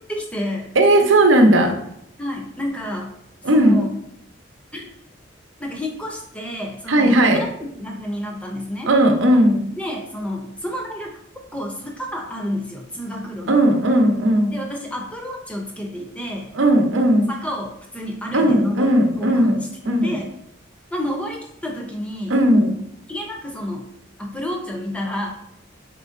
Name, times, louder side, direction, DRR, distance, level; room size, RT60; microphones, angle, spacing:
voice 1, 0.1-0.7 2.2-3.1 3.5-3.9 4.7-4.9 5.6-7.5 7.7-8.9 9.8-11.1 11.5-13.6 14.5-16.5 17.3-18.9 19.2-19.6 19.8-20.3 20.9-22.3 23.1-23.9 24.2-25.3, left 1 dB, 5° left, 1 dB, 0.5 m, -29 dB
voice 2, 0.7-1.7 3.4-3.8 6.9-7.4 8.8-9.6 13.5-14.6 16.5-17.3 18.3-20.2 22.3-22.7, right 1 dB, 85° right, 4 dB, 0.7 m, -16 dB
4.2 x 3.8 x 2.5 m, 0.76 s
head